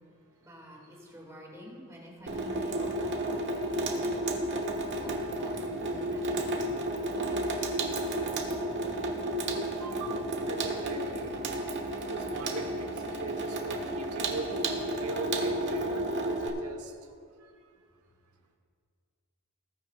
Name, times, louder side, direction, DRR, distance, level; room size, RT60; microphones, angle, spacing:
voice 1, 0.3-3.4 3.7-4.2 5.0-9.1 10.1-10.3, equal, 15° right, -3 dB, 2.4 m, -50 dB
Water tap faucet / Sink (filling or washing), 2.3-16.5, right 1 dB, 55° right, 1.3 m, -32 dB
voice 2, 9.8-10.2 10.5-11.3 12.1-14.5 15.0-16.9 17.4-17.5, right 3 dB, 80° right, 4 dB, 1.2 m, -40 dB
19.5 x 9.4 x 2.5 m, 2.2 s
head